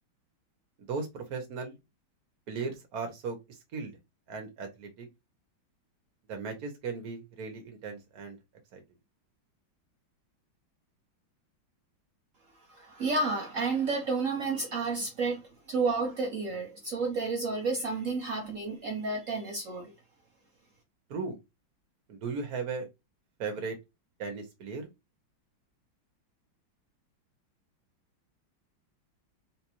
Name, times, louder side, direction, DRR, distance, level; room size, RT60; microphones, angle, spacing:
voice 1, 0.9-1.7 2.5-3.4 3.7-3.9 4.3-5.1 6.3-8.4 8.7-8.8 21.1-21.4 22.1-22.9 23.4-23.8 24.2-24.9, right 4 dB, 55° right, 1.3 m, -36 dB
voice 2, 12.7-15.4 15.7-19.9, right 3 dB, 70° right, 0.7 m, -31 dB
3.9 x 2.5 x 2.9 m
omnidirectional pair, 2.2 m